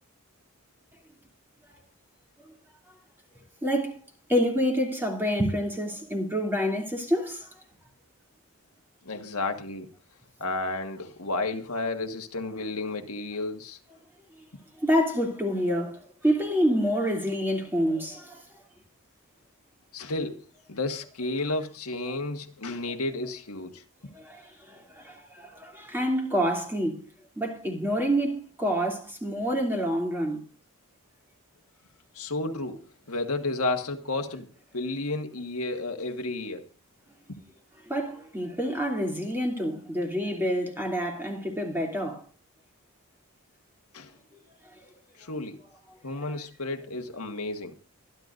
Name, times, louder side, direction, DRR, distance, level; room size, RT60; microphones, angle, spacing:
voice 1, 3.6-4.0 4.3-7.5 14.8-18.4 24.1-27.0 27.4-30.4 37.8-42.2 46.3-46.4, equal, 10° right, 2.7 m, -27 dB
voice 2, 9.0-9.9 10.4-13.8 19.9-20.4 20.7-23.8 32.1-34.5 34.7-36.6 37.3-37.4 43.9-44.1 45.2-45.6 46.0-47.8, left 2 dB, 80° left, 1.6 m, -32 dB
25.0 x 10.5 x 2.6 m
head